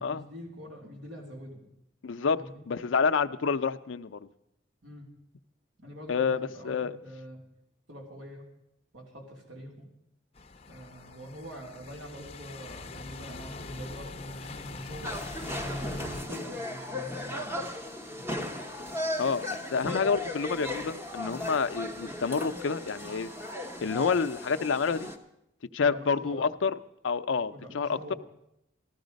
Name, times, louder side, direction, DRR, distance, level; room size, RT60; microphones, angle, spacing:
voice 1, 0.0-1.6 2.3-2.6 4.8-5.1 5.8-7.4 7.9-8.5 8.9-9.9 10.7-17.6 18.2-18.5 25.8-26.5 27.5-28.2, equal, 75° right, 0 dB, 3.0 m, -45 dB
voice 2, 2.0-2.4 2.7-4.2 6.1-6.9 19.2-23.3 23.8-25.1 25.7-26.7 27.0-28.1, left 5 dB, 75° left, 11 dB, 0.5 m, -28 dB
sound 1, 10.4-16.2, left 3 dB, 30° left, 0.6 m, -42 dB
sound 2, 15.0-25.2, left 1 dB, 15° right, 0.9 m, -36 dB
14.0 x 12.5 x 5.2 m, 0.80 s
head